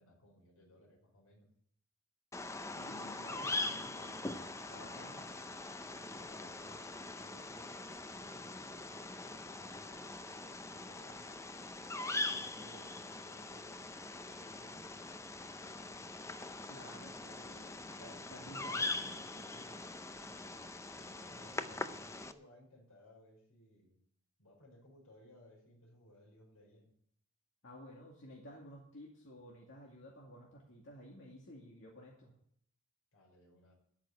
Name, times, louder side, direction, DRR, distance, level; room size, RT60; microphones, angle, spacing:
voice 1, 0.0-1.5 5.8-8.9 9.2-10.1 10.4-11.3 11.9-15.2 15.6-16.1 21.0-24.0 24.4-26.9 33.1-33.7, left 1 dB, 80° left, 0 dB, 5.1 m, -62 dB
Bird vocalization bird call bird song, 2.3-22.3, left 2 dB, 15° left, 0.5 m, -42 dB
voice 2, 2.7-5.3 16.7-19.8 27.6-32.3, equal, 60° left, -2 dB, 2.3 m, -53 dB
13.5 x 6.2 x 9.6 m, 0.68 s
head